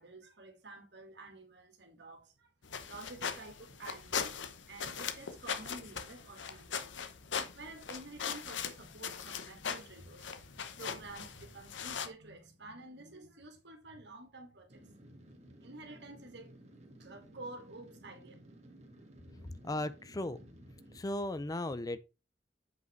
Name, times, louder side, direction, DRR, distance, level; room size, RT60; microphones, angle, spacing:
voice 1, 0.0-2.5 2.8-7.0 7.5-14.8 15.6-16.6 17.0-18.3, right 2 dB, 65° right, 2.2 m, -50 dB
sound 1, 2.6-12.1, left 7 dB, 90° left, 0.9 m, -40 dB
sound 2, 14.7-21.0, right 1 dB, 40° right, 1.7 m, -56 dB
voice 2, 19.6-20.5 20.9-22.0, left 1 dB, 20° left, 0.5 m, -36 dB
8.2 x 5.2 x 4.5 m
head